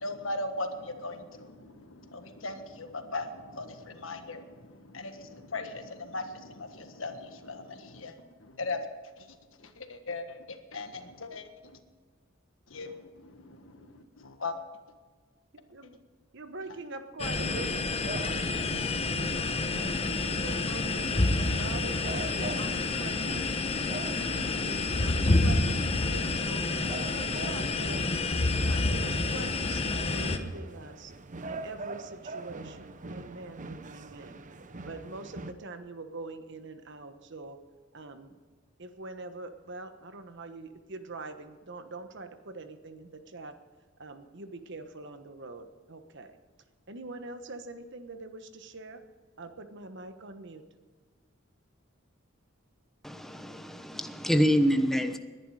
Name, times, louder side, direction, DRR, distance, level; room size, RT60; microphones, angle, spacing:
voice 1, 0.0-8.9 9.2-11.8 12.7-14.6, left 2 dB, 70° left, 7 dB, 1.5 m, -39 dB
voice 2, 15.5-16.0 16.3-18.0 19.5-23.4 24.0-26.6 26.9-28.0 28.5-31.1 31.5-34.4 34.8-37.6 37.9-38.4 38.8-43.6 44.0-46.4 46.9-49.0 49.4-50.6, right 3 dB, 60° right, 8 dB, 1.3 m, -44 dB
sound 1, 17.2-30.4, left 3 dB, 30° left, 1.0 m, -28 dB
sound 2, 17.3-35.5, right 2 dB, 40° right, 0.8 m, -43 dB
voice 3, 53.0-55.2, equal, ahead, 7 dB, 1.0 m, -26 dB
20.5 x 11.0 x 4.9 m, 1.5 s
head